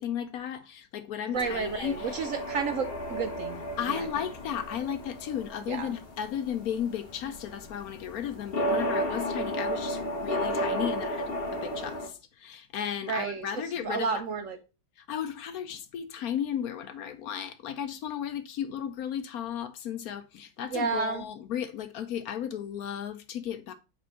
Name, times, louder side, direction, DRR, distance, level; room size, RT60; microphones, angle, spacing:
voice 1, 0.0-2.0 3.8-14.1 15.1-23.7, left 9 dB, 65° left, 1.0 m, -34 dB
sound 1, 1.3-12.1, equal, 40° left, 1.2 m, -34 dB
voice 2, 1.3-4.1 5.7-6.0 13.0-14.6 20.7-21.3, right 5 dB, 65° right, 0.8 m, -32 dB
5.1 x 4.6 x 5.6 m
omnidirectional pair, 1.9 m